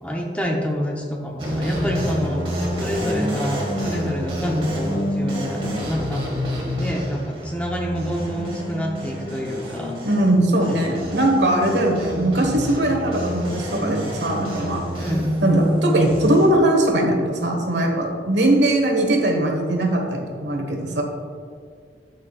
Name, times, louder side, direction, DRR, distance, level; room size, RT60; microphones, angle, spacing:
voice 1, 0.0-2.4 2.8-6.2 6.8-9.9 15.0-15.3, equal, 10° left, -1 dB, 0.8 m, -27 dB
sound 1, 1.4-16.5, equal, 30° right, 1.7 m, -27 dB
voice 2, 10.0-14.8 15.4-21.0, right 1 dB, 85° right, 2 dB, 1.4 m, -20 dB
13.0 x 6.2 x 2.4 m, 2.1 s
head